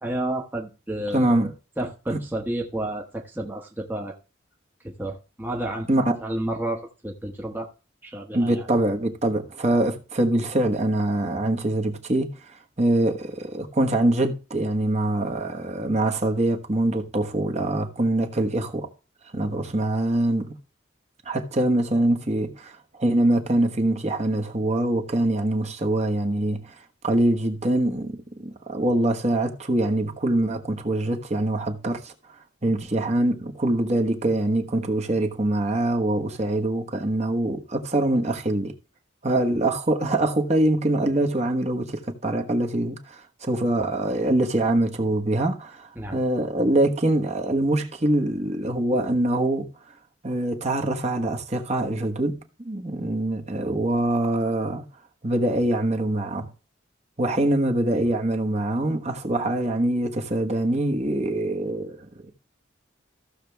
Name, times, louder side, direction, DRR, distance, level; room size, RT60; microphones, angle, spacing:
voice 1, 0.0-4.2 4.8-5.9 6.2-7.7 8.0-8.7 46.0-46.2, right 1 dB, 10° right, 1.1 m, -31 dB
voice 2, 1.1-1.5 2.1-2.2 5.9-6.2 8.3-12.3 12.8-18.9 19.3-20.5 21.2-26.7 27.0-32.1 32.6-38.7 39.2-49.7 50.2-54.8 55.2-56.5 57.2-62.0, right 1 dB, 35° right, 1.3 m, -24 dB
14.5 x 6.7 x 3.5 m
head